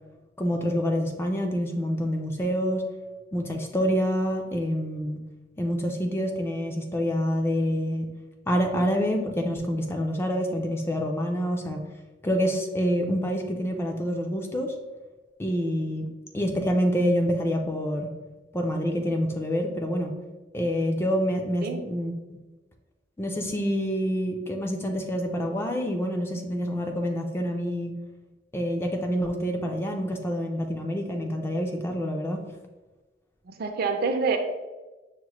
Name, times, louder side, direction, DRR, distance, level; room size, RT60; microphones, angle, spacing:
voice 1, 0.4-2.8 3.3-5.2 5.6-8.1 8.5-11.8 12.2-14.7 15.4-16.1 16.3-18.1 18.5-20.1 20.5-22.4 23.2-27.9 28.5-32.4, equal, 15° left, 2 dB, 0.4 m, -27 dB
voice 2, 33.5-34.4, right 4 dB, 55° right, 5 dB, 0.4 m, -26 dB
5.8 x 2.1 x 3.0 m, 1.2 s
head